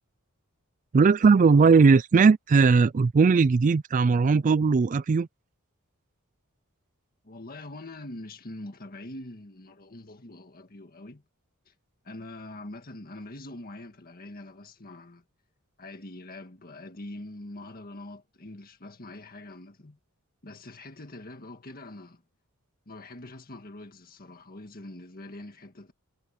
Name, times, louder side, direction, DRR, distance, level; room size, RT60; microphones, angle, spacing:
voice 1, 0.9-5.3, right 4 dB, 35° right, 0.3 m, -19 dB
voice 2, 7.2-11.2 11.7-11.8 12.0-15.2 15.8-20.0 20.4-22.2 22.9-25.9, left 2 dB, 45° left, 1.8 m, -43 dB
head